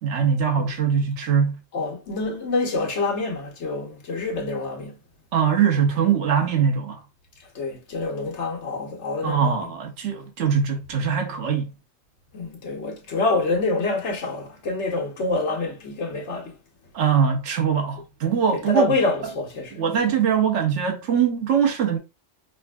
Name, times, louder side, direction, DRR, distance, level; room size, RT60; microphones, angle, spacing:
voice 1, 0.0-1.6 5.3-7.0 9.2-11.7 16.9-18.9 19.7-22.0, right 7 dB, 85° right, 1.2 m, -22 dB
voice 2, 1.7-5.0 7.4-9.7 12.3-16.6 18.5-20.3, left 3 dB, 75° left, 1.3 m, -27 dB
5.0 x 2.5 x 2.2 m
omnidirectional pair, 1.2 m